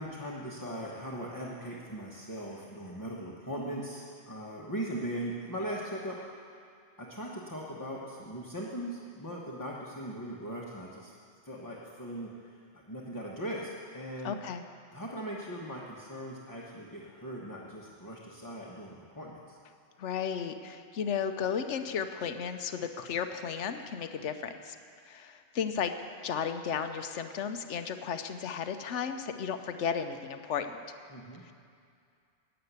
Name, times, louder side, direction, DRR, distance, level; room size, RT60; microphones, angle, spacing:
voice 1, 0.0-6.2 7.0-11.1 11.4-12.3 12.7-14.4 14.9-19.6 31.1-31.4, right 1 dB, 15° left, -4 dB, 1.2 m, -39 dB
voice 2, 14.2-14.6 20.0-24.8 25.1-25.9 26.2-30.8 31.5-31.6, left 7 dB, 75° left, 8 dB, 1.0 m, -34 dB
12.0 x 9.0 x 8.2 m, 2.4 s
omnidirectional pair, 1.2 m